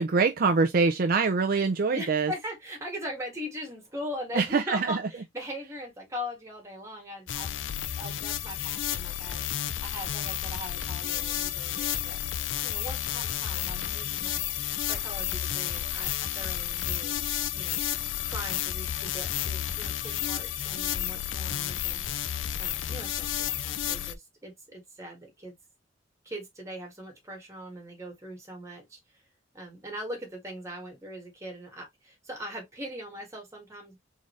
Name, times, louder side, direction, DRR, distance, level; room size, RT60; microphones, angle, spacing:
voice 1, 0.0-2.3 4.3-5.0, right 4 dB, 50° right, 0.5 m, -24 dB
voice 2, 1.9-7.6 8.0-12.2 12.6-17.2 17.5-17.8 18.2-22.0 22.6-25.5 26.2-29.2 29.5-34.0, equal, 15° right, 1.9 m, -40 dB
sound 1, 7.3-24.1, left 11 dB, 65° left, 0.5 m, -31 dB
3.8 x 3.8 x 3.2 m
head